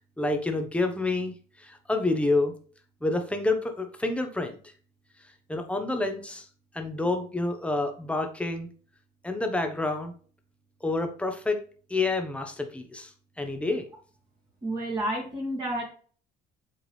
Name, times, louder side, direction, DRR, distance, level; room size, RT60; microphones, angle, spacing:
voice 1, 0.2-1.3 1.6-2.5 3.0-4.6 5.5-6.5 6.7-8.7 9.2-10.1 10.8-11.6 11.9-13.1 13.4-13.9, left 2 dB, 5° left, 5 dB, 1.1 m, -28 dB
voice 2, 14.6-15.8, right 1 dB, 25° right, -3 dB, 2.1 m, -30 dB
8.1 x 3.7 x 3.3 m, 0.42 s
cardioid pair, 110°, 17 cm